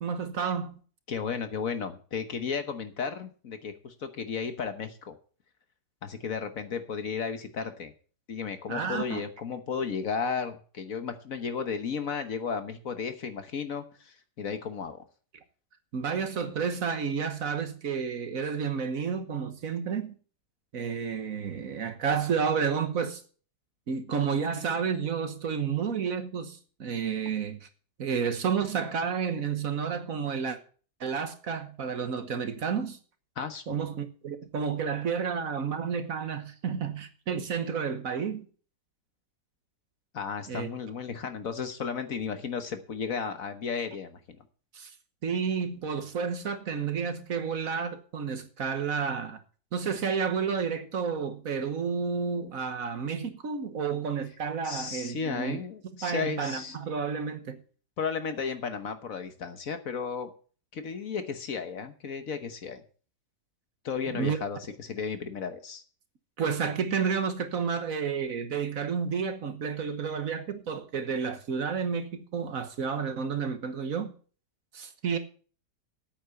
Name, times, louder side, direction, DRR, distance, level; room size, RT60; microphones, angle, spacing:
voice 1, 0.0-0.8 8.7-9.2 15.9-20.1 20.7-23.2 23.9-27.7 28.0-30.6 31.0-33.0 33.7-38.5 40.5-40.7 44.7-44.9 45.2-49.4 49.7-55.6 55.9-57.6 64.1-64.4 66.4-74.1 74.7-75.2, right 6 dB, 55° right, 1.4 m, -31 dB
voice 2, 1.1-5.1 6.0-7.9 8.3-15.0 33.4-33.8 40.1-44.2 54.6-56.8 58.0-60.3 60.7-62.8 63.8-65.8, left 6 dB, 55° left, 1.5 m, -34 dB
8.8 x 8.3 x 6.9 m
omnidirectional pair, 1.8 m